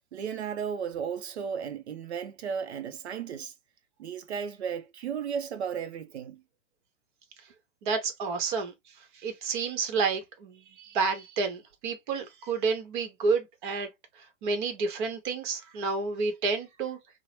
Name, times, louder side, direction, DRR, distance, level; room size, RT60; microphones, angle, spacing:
voice 1, 0.1-3.5 4.0-6.4, right 7 dB, 60° right, 0.6 m, -34 dB
voice 2, 7.8-8.7 9.1-13.9 14.4-17.0, right 4 dB, 40° right, 1.0 m, -30 dB
2.9 x 2.1 x 2.8 m
figure-of-eight pair, 110°, 36 cm